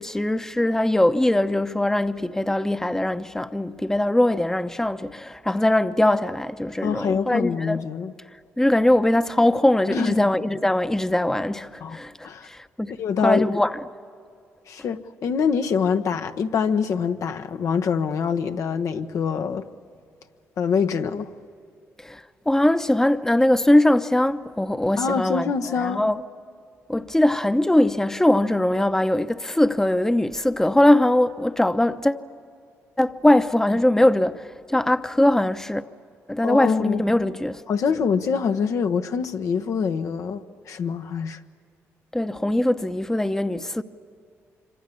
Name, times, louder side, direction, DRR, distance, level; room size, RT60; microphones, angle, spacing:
voice 1, 0.0-7.8 8.6-13.8 22.0-26.2 26.9-32.2 33.0-35.8 36.3-37.6 42.1-43.8, left 1 dB, 10° left, 0.9 m, -21 dB
voice 2, 6.8-8.1 9.9-10.2 11.8-12.0 12.2-12.5 13.0-13.4 14.7-19.7 20.6-21.3 25.0-26.0 36.4-37.0 37.7-41.4, left 6 dB, 70° left, 1.1 m, -25 dB
26.0 x 25.0 x 8.5 m
supercardioid pair, 65°, 6 cm